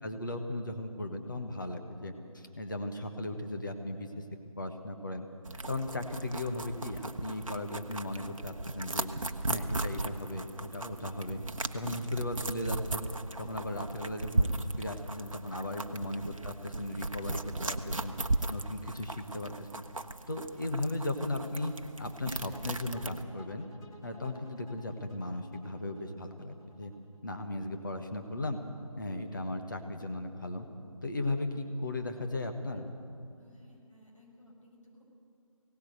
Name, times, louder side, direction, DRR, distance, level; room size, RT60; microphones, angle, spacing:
voice 1, 0.0-4.2 4.6-5.3 5.7-9.1 9.5-11.4 11.7-13.1 13.4-18.1 18.5-19.8 20.3-23.7 24.0-26.9 27.2-28.6 29.0-30.7 31.0-32.9, left 1 dB, 35° left, 4 dB, 1.4 m, -36 dB
sound 1, 5.5-23.2, right 2 dB, 65° right, 1.0 m, -37 dB
sound 2, 22.5-27.6, left 1 dB, 10° left, 1.1 m, -55 dB
voice 2, 33.4-35.1, equal, 60° left, -2 dB, 6.6 m, -58 dB
18.0 x 18.0 x 8.1 m, 2.5 s
figure-of-eight pair, 170°, 18 cm